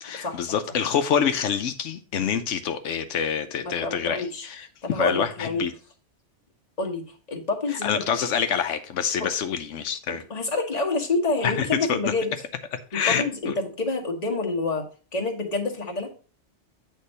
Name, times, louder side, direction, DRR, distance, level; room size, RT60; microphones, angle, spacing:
voice 1, 0.0-4.7 5.0-5.7 7.8-10.2 11.4-12.1 12.7-13.5, left 7 dB, 85° left, 1.0 m, -26 dB
voice 2, 3.6-4.5 4.8-5.6 6.8-8.0 9.2-9.3 10.3-12.3 12.9-14.8 15.1-16.1, left 3 dB, 35° left, 1.4 m, -27 dB
8.4 x 3.6 x 5.4 m
omnidirectional pair, 1.2 m